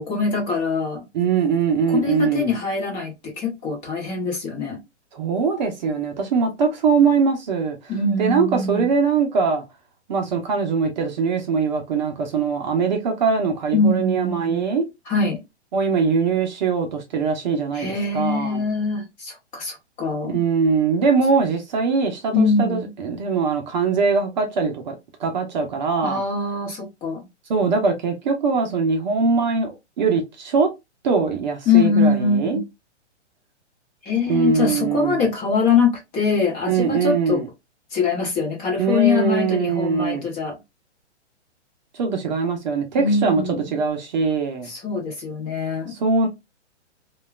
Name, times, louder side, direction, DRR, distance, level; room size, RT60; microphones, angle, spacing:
voice 1, 0.0-1.0 1.9-4.8 7.9-8.9 13.7-14.6 15.1-15.4 17.7-20.4 22.3-22.9 26.0-27.2 31.7-32.6 34.0-37.4 37.9-40.6 43.0-43.6 44.7-45.9, left 4 dB, 20° left, 0.9 m, -23 dB
voice 2, 1.1-2.5 5.1-7.8 8.2-9.6 10.1-14.9 15.7-18.6 20.3-24.9 25.2-26.2 27.5-29.7 30.0-30.7 31.0-32.6 34.3-35.3 36.7-37.5 38.8-40.3 41.9-44.7 45.9-46.3, right 5 dB, 40° right, 0.6 m, -22 dB
3.0 x 2.3 x 2.2 m
hypercardioid pair, 145°, 35 cm